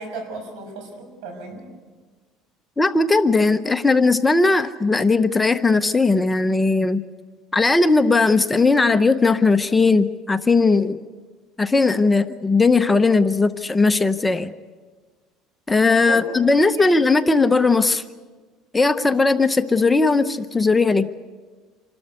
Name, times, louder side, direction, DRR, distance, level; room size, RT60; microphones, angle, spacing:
voice 1, 0.0-1.6 16.1-17.0, right 2 dB, 75° right, 5 dB, 6.2 m, -35 dB
voice 2, 2.8-7.0 7.5-11.0 11.6-14.5 15.7-18.0 18.7-21.1, left 3 dB, 10° left, 10 dB, 0.7 m, -18 dB
27.5 x 13.0 x 9.5 m, 1.4 s
cardioid pair, 125°, 0 cm